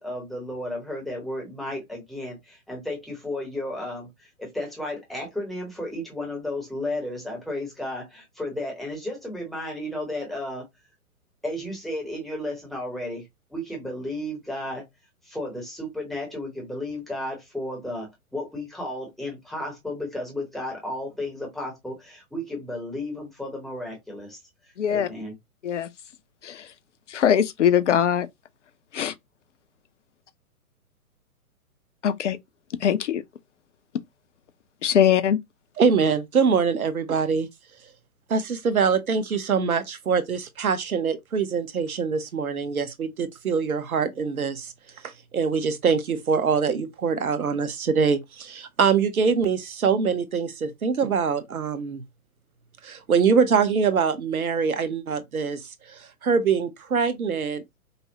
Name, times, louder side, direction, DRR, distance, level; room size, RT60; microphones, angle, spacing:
voice 1, 0.0-10.7 11.4-14.9 15.2-25.4, left 1 dB, ahead, 0.7 m, -33 dB
voice 2, 24.8-25.1 25.6-25.9 26.4-26.7 27.1-28.3 28.9-29.1 32.0-32.4 32.8-33.2 34.8-35.4, left 9 dB, 55° left, 0.6 m, -21 dB
voice 3, 35.8-37.5 38.3-44.7 45.0-52.0 52.8-57.6, right 6 dB, 70° right, 0.9 m, -24 dB
5.2 x 2.0 x 2.7 m
figure-of-eight pair, 120°, 44 cm